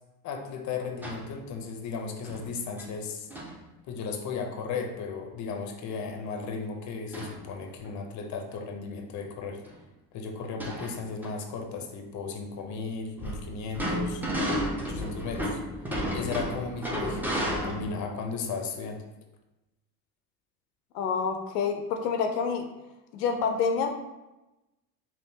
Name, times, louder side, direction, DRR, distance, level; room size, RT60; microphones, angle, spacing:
voice 1, 0.2-3.3 3.8-9.6 10.1-14.2 14.8-15.6 16.1-19.1, left 5 dB, 40° left, 3 dB, 0.6 m, -35 dB
sound 1, 1.0-1.3 2.2-2.4 2.8-2.9 3.3-3.6 7.1-7.4 7.8-7.9 9.2-9.3 9.6-9.8 10.4-11.3 13.2-18.0, equal, 5° right, 0.5 m, -32 dB
voice 2, 20.9-22.6 23.1-23.9, left 6 dB, 90° left, 5 dB, 0.6 m, -27 dB
3.5 x 2.4 x 2.7 m, 0.99 s
supercardioid pair, 90°, 46 cm